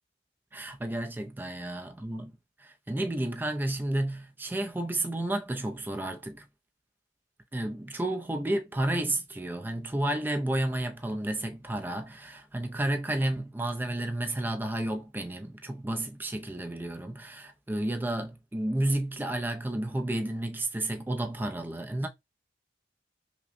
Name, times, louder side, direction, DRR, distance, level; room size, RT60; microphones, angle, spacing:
voice 1, 0.5-2.3 2.6-6.4 7.5-22.1, right 1 dB, 10° right, 0.4 m, -31 dB
5.6 x 2.0 x 2.5 m
head